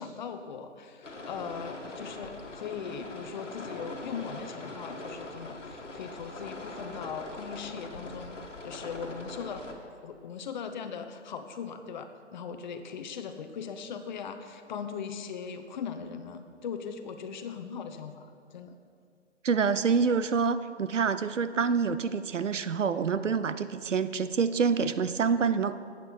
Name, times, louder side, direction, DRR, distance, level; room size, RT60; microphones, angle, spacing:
voice 1, 0.0-8.4 8.6-9.7 10.0-18.8, left 6 dB, 40° left, 8 dB, 0.8 m, -39 dB
sound 1, 1.0-9.7, left 2 dB, 85° left, 1.6 m, -42 dB
voice 2, 19.4-25.7, right 5 dB, 85° right, 13 dB, 0.7 m, -27 dB
12.5 x 8.9 x 4.4 m, 2.3 s
figure-of-eight pair, 135°, 36 cm